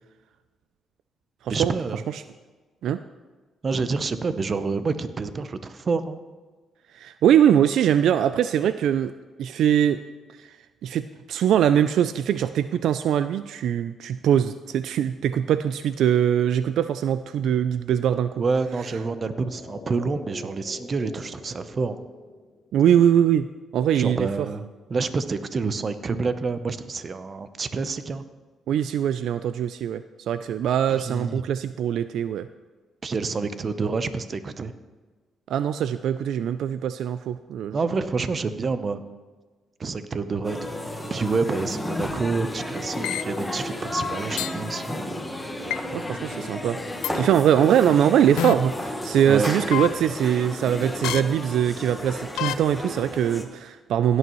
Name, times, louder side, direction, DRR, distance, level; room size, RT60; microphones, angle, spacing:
voice 1, 1.5-2.0 3.6-6.2 18.4-22.0 23.9-24.6 24.9-28.2 30.9-31.4 33.0-34.7 37.7-39.0 39.8-45.0 49.3-49.5, right 4 dB, 40° right, 11 dB, 0.7 m, -28 dB
voice 2, 6.9-9.1 9.4-10.0 10.4-10.5 10.8-18.4 22.7-23.5 23.7-24.5 28.7-32.5 35.5-37.8 45.9-46.8 47.1-54.2, right 9 dB, 75° right, 12 dB, 0.3 m, -22 dB
sound 1, 18.6-23.2 23.4-23.5, left 3 dB, 50° left, 2.5 m, -44 dB
sound 2, 40.4-53.4, left 1 dB, 10° left, 1.3 m, -32 dB
sound 3, 43.0-43.2 44.4-44.5 45.7-45.8 47.0-47.1 48.4-48.5 49.7-49.9 51.0-51.2 52.4-52.5, left 14 dB, 90° left, 0.4 m, -26 dB
16.5 x 9.4 x 3.1 m, 1.3 s
cardioid pair, 90°, 0 cm